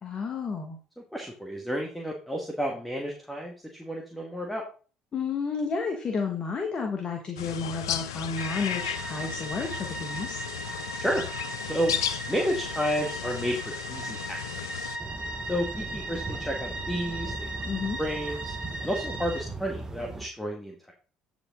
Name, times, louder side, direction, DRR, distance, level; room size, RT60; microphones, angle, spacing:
voice 1, 0.0-0.8 5.1-10.4 17.6-18.0, left 5 dB, 40° left, 2 dB, 1.5 m, -31 dB
voice 2, 1.1-3.5 3.8-4.6 11.0-11.2 11.6-11.9 12.3-14.9 15.5-17.7 18.0-18.5 18.8-20.9, equal, 5° left, 0 dB, 1.7 m, -31 dB
sound 1, 7.4-15.0, left 9 dB, 85° left, 0.5 m, -35 dB
sound 2, 8.4-19.4, right 2 dB, 60° right, 1.6 m, -38 dB
sound 3, 15.0-20.3, right 2 dB, 25° right, 1.2 m, -38 dB
8.6 x 5.2 x 3.8 m, 0.37 s
hypercardioid pair, 60°, 2 cm